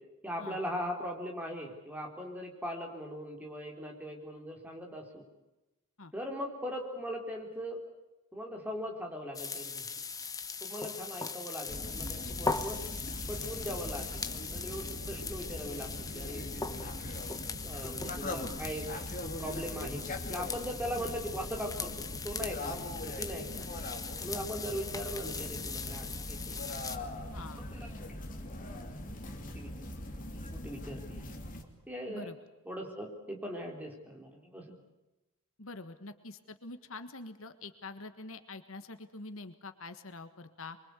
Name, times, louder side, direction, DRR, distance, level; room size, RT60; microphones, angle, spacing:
voice 1, 0.2-5.2 6.1-7.8 8.3-9.9 10.6-12.8 13.3-16.9 17.6-18.9 19.4-21.9 22.2-23.7 24.2-26.6 27.7-28.2 29.5-29.7 30.4-31.4 31.9-32.3 32.7-34.7, equal, 5° right, 1 dB, 4.0 m, -40 dB
sound 1, 9.3-27.0, left 4 dB, 15° left, 1.2 m, -40 dB
sound 2, 11.7-31.6, left 1 dB, 35° left, 2.8 m, -41 dB
voice 2, 27.3-27.6 32.1-32.4 35.6-40.8, left 3 dB, 65° left, 9 dB, 1.5 m, -45 dB
24.5 x 24.0 x 8.4 m, 1.0 s
head